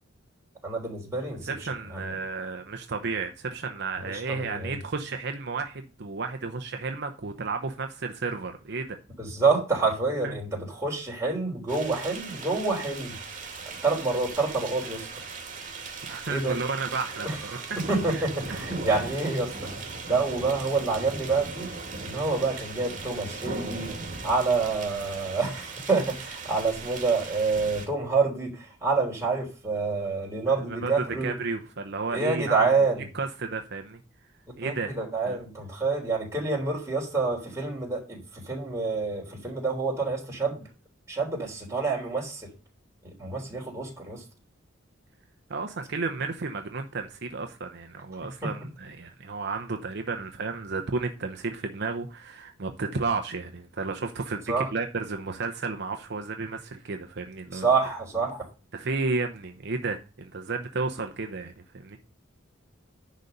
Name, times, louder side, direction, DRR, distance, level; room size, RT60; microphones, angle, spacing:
voice 1, 0.6-1.5 1.9-2.0 4.0-4.8 9.2-13.2 13.8-15.1 16.3-16.6 17.2-17.6 17.9-19.7 20.1-21.7 22.0-23.9 24.2-31.4 32.1-33.0 34.6-40.6 41.1-42.5 43.0-44.2 48.4-48.5 54.5-54.7 57.5-58.4, right 4 dB, 15° right, 3.7 m, -27 dB
voice 2, 1.4-9.0 10.2-10.3 16.0-17.5 18.1-18.2 18.9-19.0 30.7-32.7 33.1-34.0 34.6-34.9 35.3-35.4 45.5-57.6 58.7-62.0, right 4 dB, 55° right, 0.8 m, -32 dB
sound 1, 11.7-27.9, right 3 dB, 40° right, 2.4 m, -38 dB
10.5 x 4.1 x 6.7 m
head